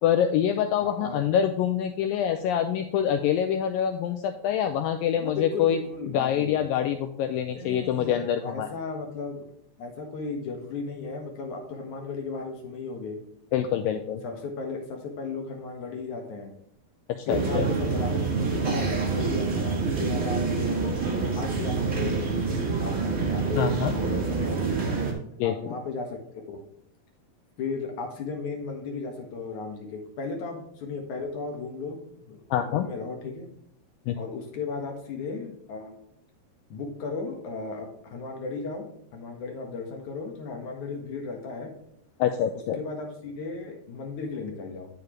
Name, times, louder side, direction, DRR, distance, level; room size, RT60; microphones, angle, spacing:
voice 1, 0.0-5.8 6.1-8.7 13.5-14.2 17.2-17.7 23.6-23.9 25.4-25.5 32.5-32.9 34.1-34.2 42.2-42.8, left 9 dB, 85° left, 7 dB, 2.0 m, -25 dB
voice 2, 0.8-1.2 5.1-6.6 7.5-9.4 9.8-13.2 14.2-16.5 17.3-25.0 25.4-26.2 26.5-26.6 27.6-32.0 32.3-33.5 34.1-35.9 36.7-41.7 42.7-44.9, left 4 dB, 60° left, 2 dB, 2.5 m, -35 dB
sound 1, 17.3-25.1, right 4 dB, 45° right, 1.0 m, -27 dB
9.6 x 6.9 x 3.1 m, 0.72 s
omnidirectional pair, 4.6 m